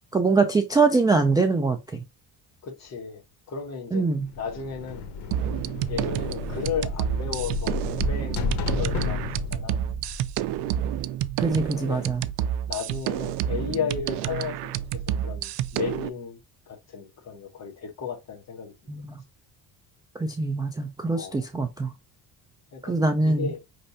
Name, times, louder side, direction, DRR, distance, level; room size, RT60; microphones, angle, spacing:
voice 1, 0.1-2.0 3.9-4.3 11.4-12.2 18.9-19.2 20.2-21.9 22.8-23.5, right 3 dB, 10° right, 0.3 m, -23 dB
voice 2, 2.6-3.2 3.5-4.1 4.4-5.0 5.9-9.8 11.7-12.0 12.7-16.4 16.7-18.7 21.1-21.4 22.7-22.9 23.2-23.6, left 6 dB, 40° left, 1.2 m, -34 dB
sound 1, 4.2-11.0, left 4 dB, 80° left, 1.0 m, -32 dB
sound 2, 5.3-16.1, right 11 dB, 85° right, 0.5 m, -29 dB
5.2 x 3.3 x 2.7 m
cardioid pair, 150°, 40 cm